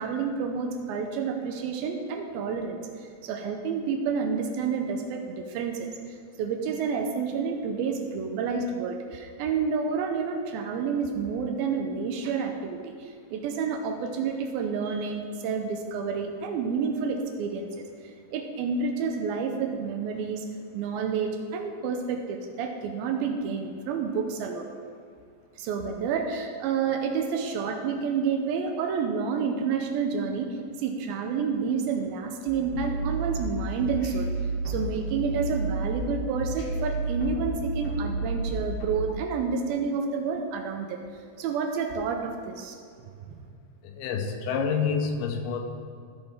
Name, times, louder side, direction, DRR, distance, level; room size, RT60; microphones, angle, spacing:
voice 1, 0.0-20.5 20.7-24.7 25.6-34.3 34.7-42.8 43.2-43.4, right 5 dB, 80° right, 4 dB, 2.4 m, -29 dB
sound 1, 32.5-39.0, right 2 dB, 50° left, 2.1 m, -31 dB
voice 2, 43.8-45.6, left 5 dB, 85° left, 5 dB, 2.7 m, -28 dB
13.5 x 6.2 x 3.6 m, 2.3 s
omnidirectional pair, 4.5 m